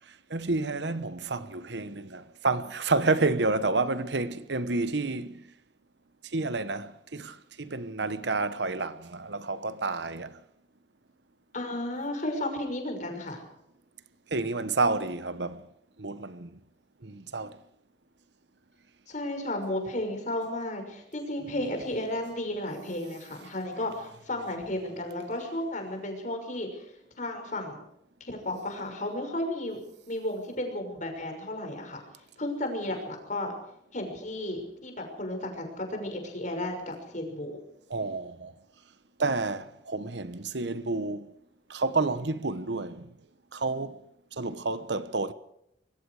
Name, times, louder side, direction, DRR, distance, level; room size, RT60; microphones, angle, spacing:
voice 1, 0.1-5.4 6.2-10.4 14.3-15.7 16.0-16.6 17.0-17.6 37.9-38.5 39.2-41.3 41.7-43.1 43.5-44.0 44.3-45.3, right 3 dB, 65° right, 1.1 m, -30 dB
voice 2, 11.5-13.4 19.1-26.9 27.2-27.8 28.3-29.8 30.1-32.0 32.4-33.5 33.9-37.6, left 1 dB, 45° left, 6.1 m, -33 dB
25.0 x 22.5 x 4.9 m
head